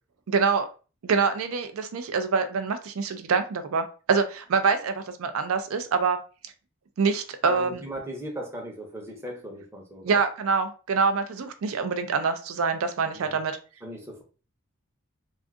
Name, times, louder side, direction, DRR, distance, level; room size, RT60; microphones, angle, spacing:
voice 1, 0.3-0.7 1.0-6.2 7.0-7.8 10.0-13.6, right 5 dB, 80° right, 8 dB, 0.4 m, -25 dB
voice 2, 7.5-10.2 13.1-13.4 13.8-14.2, equal, 10° right, 1 dB, 0.7 m, -38 dB
2.6 x 2.4 x 3.4 m, 0.35 s
head